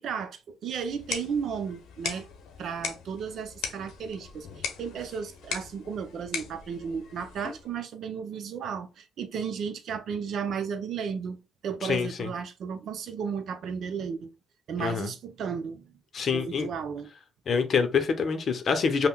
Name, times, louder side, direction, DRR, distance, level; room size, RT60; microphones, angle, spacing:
voice 1, 0.0-2.3 2.6-11.4 11.6-14.3 14.7-15.9 16.3-17.1, right 6 dB, 65° right, 0.5 m, -34 dB
sound 1, 0.8-7.8, left 6 dB, 90° left, 0.7 m, -39 dB
voice 2, 11.8-12.3 14.8-15.1 16.1-16.7 17.5-19.1, left 5 dB, 55° left, 0.6 m, -26 dB
5.5 x 2.1 x 2.3 m
cardioid pair, 90°, 0 cm